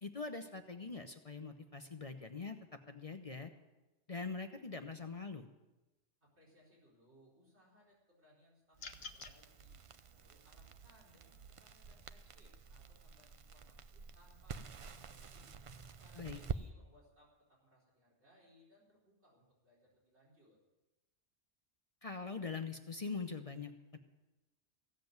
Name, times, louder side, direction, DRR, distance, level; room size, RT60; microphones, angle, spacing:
voice 1, 0.0-2.6 2.9-3.5 4.1-5.5 16.2-16.4 22.0-24.0, left 4 dB, 35° left, 6 dB, 0.8 m, -43 dB
voice 2, 6.2-9.8 10.1-15.5 16.0-20.6, equal, 75° right, -4 dB, 4.8 m, -68 dB
sound 1, 8.8-9.4, left 4 dB, 75° left, 1.3 m, -48 dB
Crackle, 8.8-16.6, right 6 dB, 45° right, 0.4 m, -48 dB
16.0 x 7.6 x 9.2 m, 1.1 s
omnidirectional pair, 1.2 m